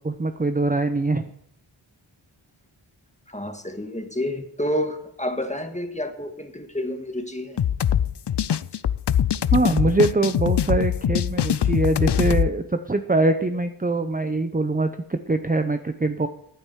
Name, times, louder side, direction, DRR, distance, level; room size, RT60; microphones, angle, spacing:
voice 1, 0.0-1.3 9.5-16.3, right 2 dB, 15° right, 8 dB, 0.7 m, -23 dB
voice 2, 3.3-7.6, left 1 dB, 15° left, 5 dB, 1.8 m, -29 dB
sound 1, 7.6-12.5, left 9 dB, 55° left, 0.5 m, -22 dB
14.5 x 8.9 x 4.7 m, 0.76 s
wide cardioid pair, 45°, 50 cm